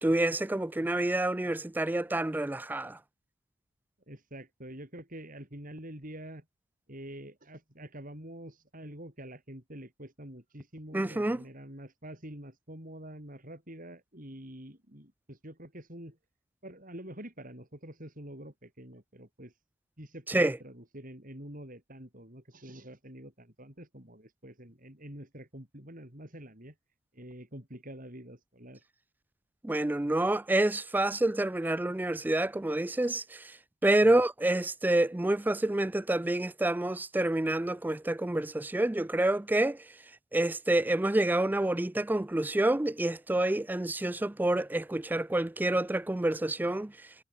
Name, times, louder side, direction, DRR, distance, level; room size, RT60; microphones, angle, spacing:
voice 1, 0.0-3.0 10.9-11.4 20.3-20.6 29.6-33.6 33.8-39.8 40.3-46.9, right 1 dB, 10° right, 0.3 m, -28 dB
voice 2, 4.1-6.4 6.9-16.2 16.6-19.5 20.0-26.7 27.1-28.8 34.0-34.2, right 1 dB, 40° right, 6.1 m, -46 dB
head